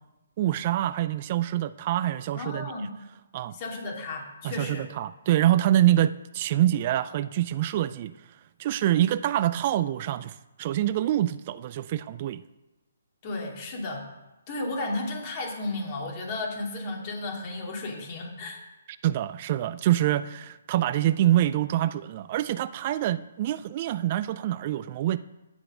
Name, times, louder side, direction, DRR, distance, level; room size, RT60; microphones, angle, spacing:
voice 1, 0.4-2.7 3.3-3.5 4.4-8.1 8.6-12.4 19.0-25.2, right 13 dB, 35° right, 0.4 m, -25 dB
voice 2, 2.3-2.9 3.5-4.9 13.2-14.1 14.5-18.6, left 2 dB, 35° left, 2.6 m, -33 dB
9.0 x 7.6 x 6.2 m
hypercardioid pair, 150°, 0 cm